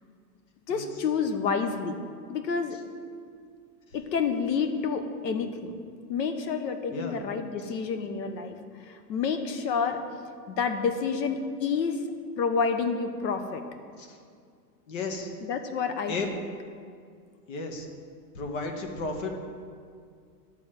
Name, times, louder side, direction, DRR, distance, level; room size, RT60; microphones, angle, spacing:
voice 1, 0.7-2.0 2.3-2.8 3.9-5.7 6.1-10.0 10.5-12.0 12.4-13.6 15.4-16.2, left 5 dB, 80° left, 7 dB, 1.2 m, -29 dB
voice 2, 14.9-15.3 16.1-16.3 17.5-17.9 18.3-19.3, left 3 dB, 50° left, 3 dB, 1.4 m, -33 dB
11.5 x 4.2 x 7.4 m, 2.2 s
supercardioid pair, 160°, 50 cm